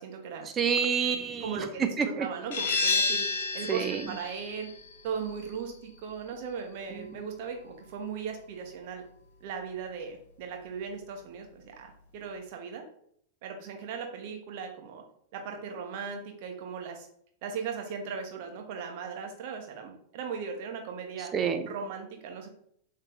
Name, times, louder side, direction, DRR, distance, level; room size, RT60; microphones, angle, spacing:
voice 1, 0.0-0.5 1.4-3.3 3.5-4.7 5.0-9.0 9.4-12.8 13.4-15.0 15.3-17.1 17.4-21.3 21.7-22.5, right 6 dB, 50° right, 3 dB, 1.5 m, -38 dB
voice 2, 0.5-2.3 3.7-4.1 6.9-7.2 21.3-21.7, right 6 dB, 25° right, 7 dB, 0.9 m, -28 dB
sound 1, 2.5-7.9, left 4 dB, 60° left, 1.4 m, -32 dB
7.7 x 4.6 x 3.2 m, 0.67 s
figure-of-eight pair, 90°, 0 cm